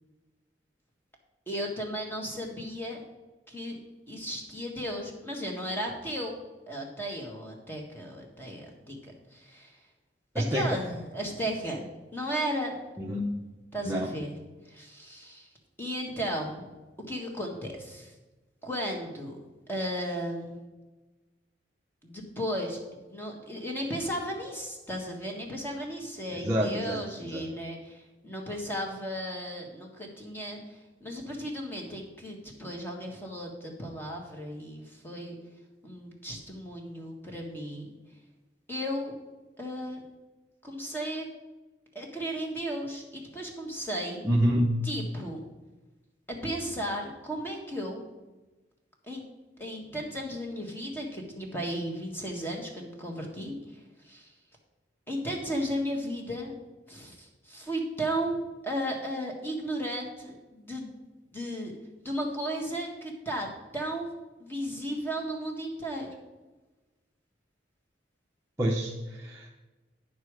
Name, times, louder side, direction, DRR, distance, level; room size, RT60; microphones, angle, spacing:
voice 1, 1.5-3.0 3.5-3.8 4.1-6.4 6.7-9.0 9.3-9.8 10.3-12.8 13.7-14.4 14.6-15.5 15.8-16.7 17.1-18.1 18.6-19.4 19.7-20.6 22.0-22.8 23.1-35.4 35.8-37.9 38.7-39.1 39.6-40.1 40.6-41.2 41.9-44.2 44.8-45.5 46.3-48.0 49.1-49.2 49.6-53.6 54.0-54.3 55.1-56.5 56.9-60.9 61.3-61.7 62.0-63.5 63.7-64.1 64.4-66.1, equal, 10° left, 0 dB, 1.7 m, -35 dB
voice 2, 26.3-27.5 44.2-44.7 68.6-69.5, equal, 15° right, -3 dB, 0.7 m, -27 dB
9.5 x 6.9 x 4.8 m, 1.1 s
head